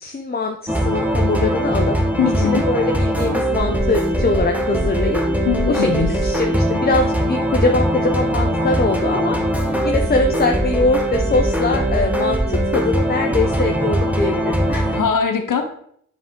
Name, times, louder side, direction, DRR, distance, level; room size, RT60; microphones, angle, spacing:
voice 1, 0.0-2.0 2.4-5.2 5.7-5.9 6.2-9.4 9.8-14.4 14.7-15.0, left 3 dB, 30° left, 3 dB, 0.6 m, -22 dB
sound 1, 0.7-15.0, right 1 dB, 5° right, 1.0 m, -20 dB
voice 2, 2.2-2.6 5.4-6.2 14.7-15.6, left 6 dB, 85° left, 5 dB, 0.9 m, -21 dB
7.3 x 3.8 x 3.7 m, 0.68 s
wide cardioid pair, 65°, 31 cm